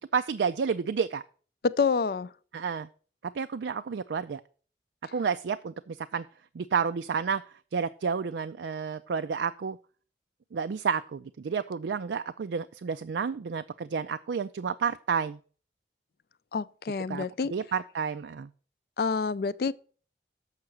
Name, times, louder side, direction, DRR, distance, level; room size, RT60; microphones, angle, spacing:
voice 1, 0.1-1.2 2.5-2.9 3.3-4.4 5.1-6.2 6.5-7.4 7.7-9.8 10.5-15.4 17.1-17.3 17.5-18.5, right 6 dB, 85° right, 0.4 m, -30 dB
voice 2, 1.6-2.3 5.0-5.1 16.5-17.5 19.0-19.7, left 5 dB, 60° left, 0.4 m, -27 dB
7.3 x 5.7 x 7.7 m
head